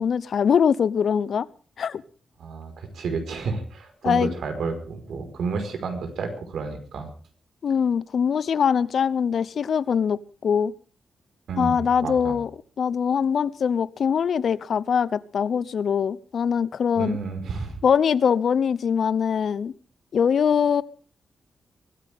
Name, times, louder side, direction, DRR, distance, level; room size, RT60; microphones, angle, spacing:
voice 1, 0.0-1.5 1.8-2.0 4.0-4.3 7.6-10.7 11.6-12.5 12.8-17.2 17.8-19.7 20.1-20.8, left 7 dB, 60° left, 18 dB, 0.8 m, -22 dB
voice 2, 2.4-7.1 11.5-12.4 16.9-17.8, right 4 dB, 80° right, 6 dB, 4.8 m, -31 dB
23.5 x 15.0 x 3.6 m, 0.39 s
wide cardioid pair, 140°, 0 cm